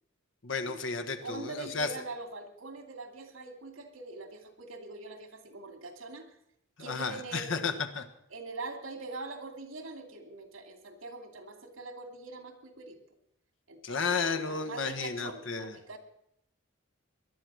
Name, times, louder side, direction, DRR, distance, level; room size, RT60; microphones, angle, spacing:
voice 1, 0.4-1.9 6.8-8.0 13.8-15.7, left 4 dB, 65° left, 8 dB, 1.3 m, -33 dB
voice 2, 1.2-6.3 6.8-7.8 8.3-13.0 13.7-16.0, right 3 dB, 85° right, 6 dB, 2.6 m, -43 dB
19.5 x 12.0 x 6.3 m, 0.76 s
head